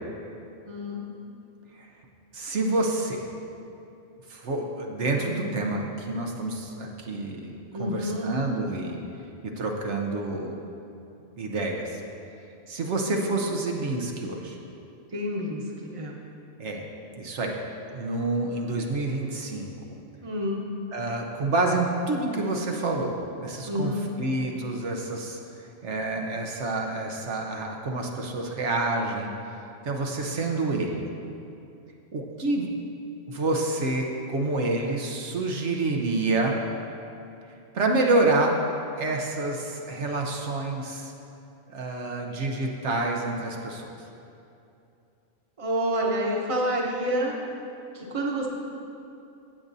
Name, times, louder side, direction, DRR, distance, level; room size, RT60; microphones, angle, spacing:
voice 1, 0.7-1.0 5.0-5.6 7.7-8.3 15.1-16.2 20.2-20.6 23.7-24.0 45.6-47.4 47.9-48.5, equal, 30° right, -2 dB, 1.0 m, -29 dB
voice 2, 2.3-3.3 4.3-9.0 9.4-10.6 11.4-12.0 12.7-14.6 16.6-16.8 17.2-17.6 17.9-20.0 20.9-23.9 24.2-25.4 25.8-29.3 29.8-31.0 32.1-32.7 33.3-36.6 37.7-38.6 38.9-41.1 41.7-43.9, right 2 dB, 70° right, 1 dB, 1.1 m, -28 dB
15.0 x 8.5 x 2.7 m, 2.8 s
omnidirectional pair, 1.2 m